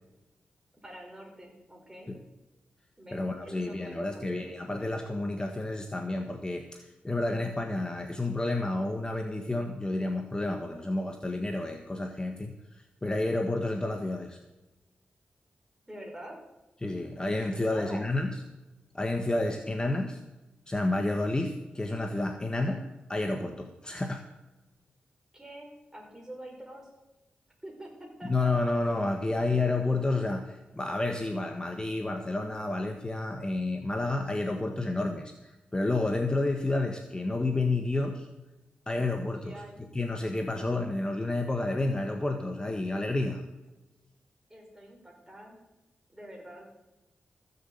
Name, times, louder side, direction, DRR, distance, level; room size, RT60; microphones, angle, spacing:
voice 1, 0.8-2.1 3.0-4.5 15.9-16.4 17.5-18.1 25.3-26.9 27.6-28.7 39.3-39.8 44.5-45.6 46.1-46.7, right 1 dB, 15° right, 0 dB, 5.1 m, -46 dB
voice 2, 3.1-14.4 16.8-18.3 18.9-20.2 20.7-24.2 28.2-38.3 38.9-39.6 39.9-43.4, left 2 dB, 20° left, 4 dB, 1.3 m, -30 dB
15.0 x 7.0 x 7.9 m, 1.0 s
cardioid pair, 65°, 4 cm